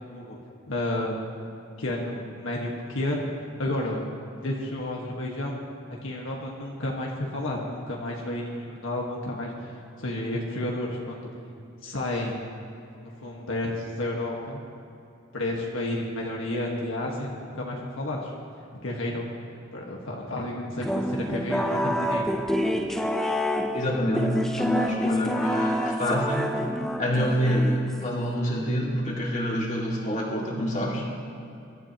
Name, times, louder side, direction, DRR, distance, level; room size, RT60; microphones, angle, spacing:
voice 1, 0.7-1.2 1.8-3.3 3.6-4.1 4.4-5.6 5.9-9.7 10.0-11.3 11.8-12.4 13.0-14.6 15.3-18.3 18.7-19.4 19.7-22.2, left 1 dB, 70° left, -2 dB, 1.5 m, -31 dB
sound 1, 20.8-28.2, equal, ahead, 0.6 m, -28 dB
voice 2, 23.7-26.5 27.0-31.1, equal, 35° left, -3 dB, 2.1 m, -26 dB
23.0 x 12.5 x 3.0 m, 2.7 s
head